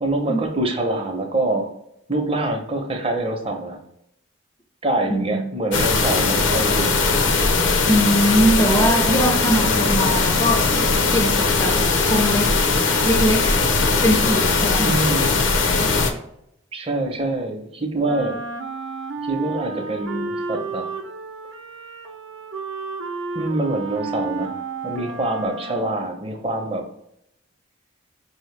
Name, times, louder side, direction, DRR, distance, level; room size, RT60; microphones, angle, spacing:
voice 1, 0.0-1.7 2.1-3.8 4.8-7.0 9.6-9.7 14.8-15.4 16.7-18.4 19.2-20.9 23.3-26.8, right 2 dB, 30° right, 3 dB, 0.6 m, -25 dB
voice 2, 5.1-5.5 7.9-10.7 11.1-11.8 12.1-12.5 13.0-15.0, equal, 15° left, 2 dB, 0.4 m, -21 dB
sound 1, 5.7-16.1, left 4 dB, 75° left, 0.6 m, -19 dB
Wind instrument woodwind instrument, 18.0-26.1, right 3 dB, 80° right, 0.6 m, -32 dB
5.3 x 2.7 x 3.2 m, 0.78 s
head